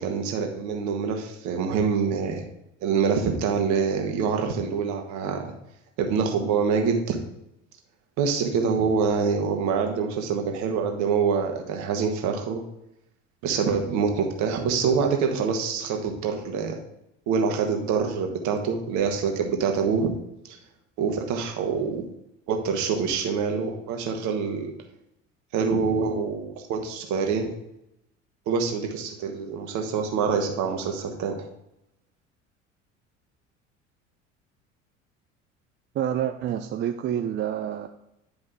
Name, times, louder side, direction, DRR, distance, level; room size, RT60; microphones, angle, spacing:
voice 1, 0.0-2.4 2.8-5.5 6.0-7.2 8.2-12.6 13.4-16.8 17.3-20.1 20.5-20.6 21.0-22.0 22.5-24.7 25.5-27.5 28.5-31.4, right 5 dB, 50° right, 3 dB, 1.6 m, -25 dB
voice 2, 35.9-37.9, right 10 dB, 30° right, 6 dB, 0.5 m, -28 dB
9.9 x 5.2 x 3.8 m, 0.85 s
figure-of-eight pair, 65°, 38 cm